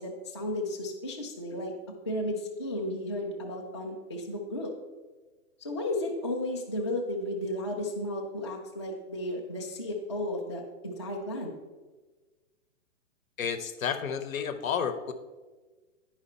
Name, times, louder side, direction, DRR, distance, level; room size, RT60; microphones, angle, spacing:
voice 1, 0.0-1.7 2.1-4.7 5.6-11.6, left 1 dB, 25° left, -2 dB, 0.3 m, -34 dB
voice 2, 13.4-15.1, left 7 dB, 80° left, 11 dB, 0.9 m, -31 dB
10.0 x 4.8 x 4.2 m, 1.3 s
hypercardioid pair, 170°, 41 cm